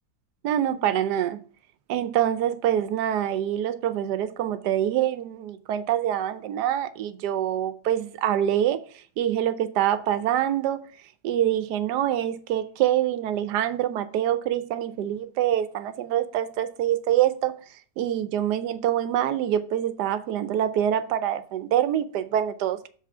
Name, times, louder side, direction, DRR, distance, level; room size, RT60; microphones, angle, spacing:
voice 1, 0.4-1.4 1.9-10.9 11.2-17.5 18.0-22.9, right 11 dB, 85° right, 1.2 m, -25 dB
7.5 x 4.0 x 5.5 m
omnidirectional pair, 1.8 m